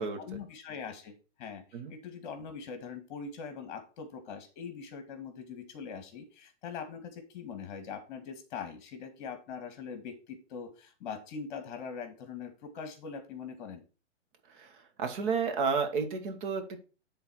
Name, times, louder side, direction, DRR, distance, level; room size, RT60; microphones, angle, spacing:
voice 1, 0.0-13.8, left 6 dB, 40° left, 7 dB, 1.9 m, -42 dB
voice 2, 15.0-16.8, right 5 dB, 40° right, 5 dB, 1.6 m, -31 dB
11.0 x 3.9 x 4.7 m, 0.33 s
hypercardioid pair, 150°, 37 cm